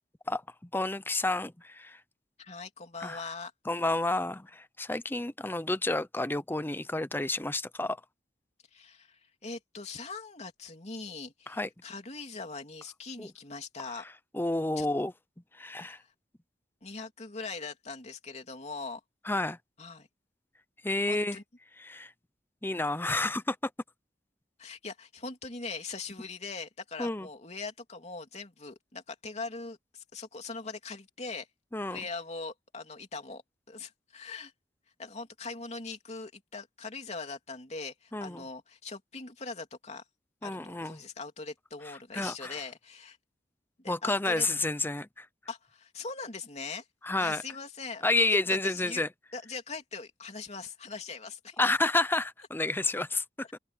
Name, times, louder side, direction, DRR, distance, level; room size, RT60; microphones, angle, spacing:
voice 1, 0.3-2.0 3.0-3.2 3.7-8.0 11.5-11.7 13.2-13.3 14.3-15.1 15.5-16.0 19.3-19.6 20.8-21.4 21.8-22.1 22.6-23.6 27.0-27.3 31.7-32.0 38.1-38.4 40.4-41.0 42.1-42.6 43.9-45.3 47.0-47.4 48.0-49.1 51.6-53.2 53.5-53.6, left 2 dB, 10° left, 0.8 m, -30 dB
voice 2, 2.4-3.5 8.7-14.0 14.8-14.9 15.8-16.1 16.8-19.0 19.8-20.1 21.1-21.4 23.0-23.2 24.6-31.5 31.9-34.5 35.0-40.0 40.4-43.2 43.8-44.5 45.5-46.9 47.2-49.0 49.3-51.6 53.4-53.5, left 4 dB, 40° left, 3.1 m, -41 dB
head